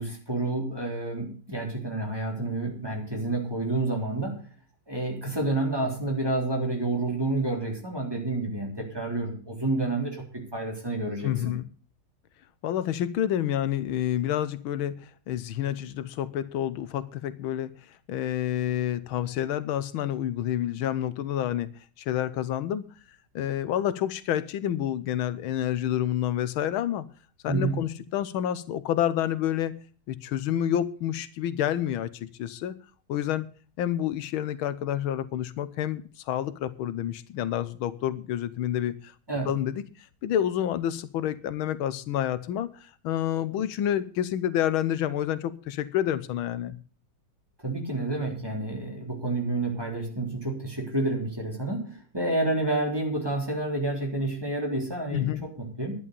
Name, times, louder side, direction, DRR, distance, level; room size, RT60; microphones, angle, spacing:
voice 1, 0.0-4.4 4.9-11.3 27.5-27.8 39.3-39.5 47.6-55.9, right 2 dB, 10° right, 3.7 m, -29 dB
voice 2, 11.2-11.6 12.6-17.7 18.1-21.7 22.0-22.9 23.3-27.1 27.4-29.7 30.1-32.7 33.1-33.5 33.8-39.1 39.4-46.8 55.1-55.5, left 11 dB, 85° left, 1.6 m, -29 dB
11.0 x 10.5 x 6.8 m
omnidirectional pair, 2.2 m